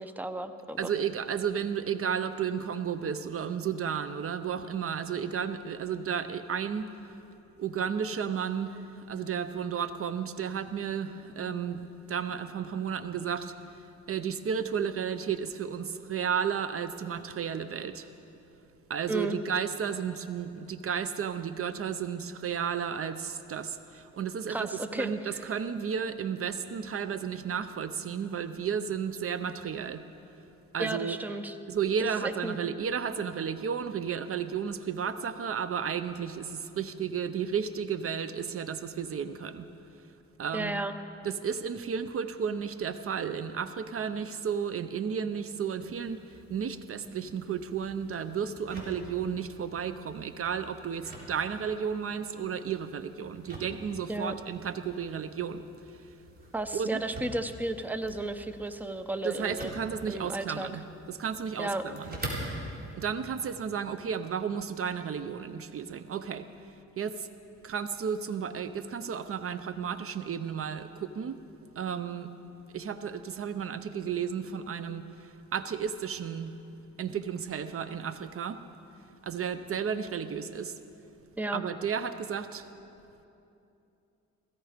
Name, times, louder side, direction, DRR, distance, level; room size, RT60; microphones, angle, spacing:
voice 1, 0.0-0.9 19.1-19.4 24.5-25.4 30.8-31.6 32.0-32.6 40.5-41.0 54.1-54.3 56.5-59.7 60.1-60.7 61.6-61.8 81.4-81.6, right 2 dB, 5° right, 9 dB, 0.8 m, -33 dB
voice 2, 0.8-6.9 7.6-18.1 18.9-24.7 25.0-30.0 30.7-31.2 31.7-39.7 40.4-40.8 41.2-56.1 56.7-57.0 59.2-62.2 63.0-66.5 67.0-67.3 67.6-71.4 71.8-72.3 72.7-76.5 77.0-78.6 79.2-80.8 81.5-82.7, right 7 dB, 50° right, 12 dB, 0.7 m, -33 dB
sound 1, 45.9-62.9, right 1 dB, 30° right, 4.2 m, -46 dB
16.5 x 16.5 x 5.1 m, 2.8 s
cardioid pair, 90°, 30 cm